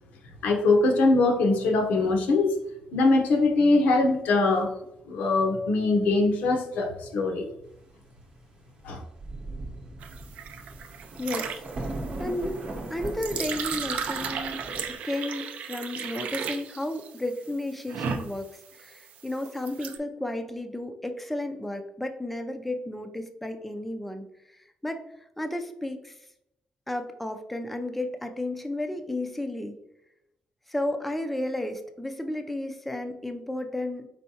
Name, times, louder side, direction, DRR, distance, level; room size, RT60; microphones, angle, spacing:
voice 1, 0.4-2.5 2.9-4.7 5.1-7.5 8.8-9.0, left 3 dB, 90° left, 3 dB, 0.8 m, -22 dB
Thunder, 8.8-8.9 9.2-14.9, right 2 dB, 40° right, 0.8 m, -38 dB
sound 1, 10.0-20.0, right 6 dB, 70° right, 0.4 m, -35 dB
voice 2, 11.2-11.5 11.9-12.7 12.9-14.6 14.9-25.0 25.4-26.2 26.9-29.7 30.7-34.1, left 1 dB, 5° left, 6 dB, 0.3 m, -33 dB
4.5 x 4.4 x 2.7 m, 0.84 s
cardioid pair, 155°, 3 cm